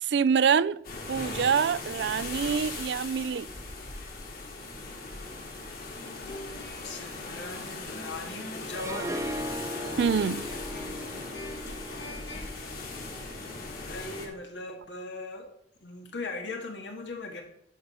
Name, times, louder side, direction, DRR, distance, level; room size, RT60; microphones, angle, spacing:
voice 1, 0.0-0.8 1.1-3.5 10.0-10.5, right 6 dB, 70° right, 0.3 m, -25 dB
sound 1, 0.8-14.3, left 3 dB, 50° left, 2.4 m, -39 dB
sound 2, 6.0-12.7, left 1 dB, 65° left, 2.4 m, -46 dB
voice 2, 6.8-9.5 13.9-15.5 15.8-17.4, left 3 dB, 85° left, 2.1 m, -39 dB
Harp, 8.7-13.8, equal, 15° right, 0.6 m, -38 dB
11.0 x 5.5 x 5.5 m
head